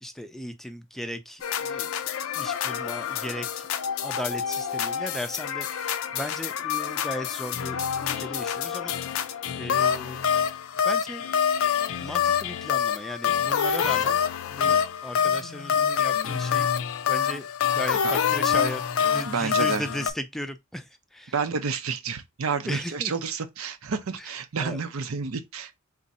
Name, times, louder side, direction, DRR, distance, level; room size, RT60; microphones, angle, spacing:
voice 1, 0.0-1.9 2.4-3.7 4.0-9.3 9.6-10.2 10.8-11.4 12.0-14.2 14.5-16.7 17.1-17.5 17.7-20.9 21.1-21.3 22.7-23.1 24.6-24.8, equal, ahead, 0.3 m, -36 dB
sound 1, 1.4-20.1, left 8 dB, 80° left, 0.4 m, -26 dB
voice 2, 19.3-19.8 21.3-25.7, right 5 dB, 85° right, 0.6 m, -30 dB
3.6 x 2.6 x 4.1 m
head